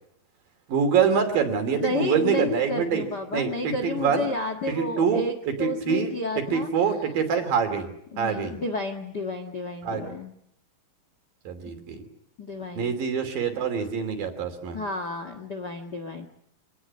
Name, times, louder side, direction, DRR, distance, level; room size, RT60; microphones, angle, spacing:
voice 1, 0.7-3.0 3.3-4.3 4.7-6.1 6.5-7.9 8.2-8.6 9.8-10.0 11.5-12.0 12.8-14.8, right 6 dB, 65° right, 7 dB, 4.6 m, -25 dB
voice 2, 1.7-7.1 8.1-10.3 12.4-12.9 14.7-16.3, left 2 dB, 45° left, 7 dB, 1.4 m, -31 dB
26.0 x 18.5 x 9.8 m, 0.75 s
omnidirectional pair, 4.5 m